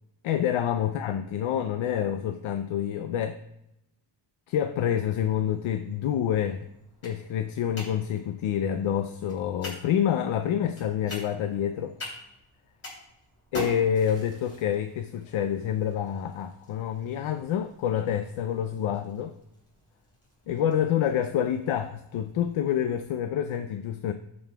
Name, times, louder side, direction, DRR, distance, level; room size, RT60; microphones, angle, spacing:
voice 1, 0.2-3.4 4.5-6.6 7.0-11.9 13.5-19.3 20.5-24.1, left 9 dB, 75° left, 9 dB, 0.6 m, -27 dB
sound 1, 5.1-23.0, left 1 dB, 30° left, 3.1 m, -46 dB
15.5 x 5.4 x 2.3 m, 0.84 s
wide cardioid pair, 160°, 48 cm